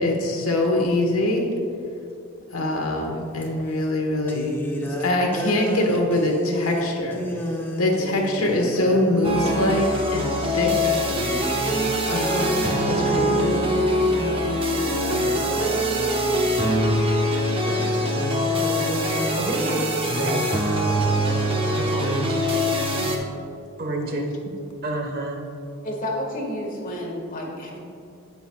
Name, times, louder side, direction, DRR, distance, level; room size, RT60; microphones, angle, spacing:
voice 1, 0.0-1.5 2.5-4.6 4.8-11.0 12.1-13.6, left 1 dB, 75° left, 1 dB, 1.3 m, -24 dB
sound 1, 3.4-3.5 4.3-10.3 10.6-10.8 11.1-22.3, equal, 10° left, 0.8 m, -31 dB
sound 2, 9.2-23.2, equal, 25° right, 0.9 m, -23 dB
voice 2, 19.0-20.5 21.7-22.4 23.8-24.4 24.8-25.4, right 1 dB, 45° right, 2 dB, 1.1 m, -29 dB
voice 3, 25.8-27.8, left 1 dB, 40° left, -1 dB, 1.6 m, -30 dB
16.5 x 6.0 x 2.3 m, 2.6 s
head